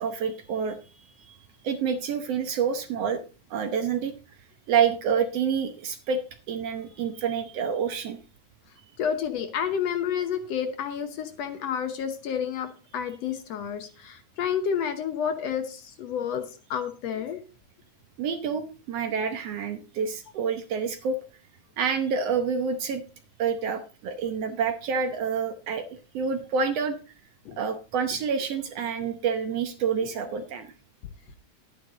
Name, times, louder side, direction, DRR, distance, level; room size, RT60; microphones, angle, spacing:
voice 1, 0.0-1.4 1.6-3.2 3.5-4.1 4.7-6.2 6.5-8.2 18.2-21.2 21.8-23.0 23.4-25.8 26.1-27.0 27.6-30.7, right 6 dB, 65° right, 8 dB, 1.8 m, -28 dB
voice 2, 9.0-17.4 27.5-27.6, left 8 dB, 65° left, 8 dB, 1.9 m, -30 dB
11.5 x 9.6 x 3.9 m, 0.34 s
omnidirectional pair, 3.5 m